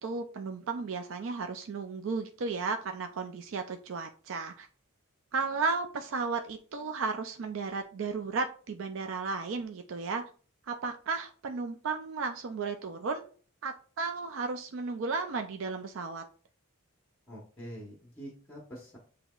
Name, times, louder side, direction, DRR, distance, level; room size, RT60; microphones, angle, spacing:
voice 1, 0.0-4.7 5.3-10.2 10.7-13.3 13.6-16.2, right 4 dB, 60° right, 6 dB, 0.4 m, -34 dB
voice 2, 17.3-19.0, equal, 10° left, -2 dB, 1.0 m, -45 dB
7.1 x 2.9 x 2.3 m, 0.40 s
head